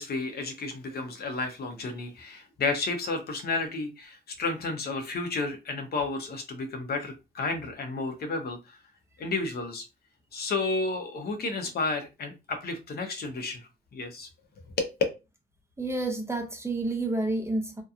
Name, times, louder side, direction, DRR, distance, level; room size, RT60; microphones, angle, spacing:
voice 1, 0.0-8.8 9.2-9.8 10.3-13.6 13.9-14.3 14.8-14.9, left 3 dB, 50° left, 0.7 m, -32 dB
voice 2, 15.8-17.8, right 2 dB, 15° right, 0.6 m, -29 dB
2.8 x 2.2 x 2.4 m
cardioid pair, 90°, 20 cm